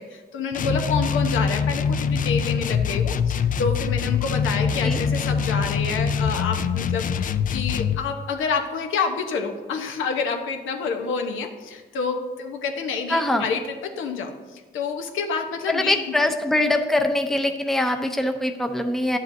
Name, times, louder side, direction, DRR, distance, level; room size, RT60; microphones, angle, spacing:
voice 1, 0.0-16.0, left 5 dB, 80° left, 5 dB, 1.0 m, -28 dB
sound 1, 0.5-8.0, left 6 dB, 45° left, 0.4 m, -24 dB
voice 2, 13.1-13.4 15.7-19.2, left 1 dB, ahead, 5 dB, 0.7 m, -23 dB
10.5 x 7.6 x 2.7 m, 1.3 s
cardioid pair, 90°, 20 cm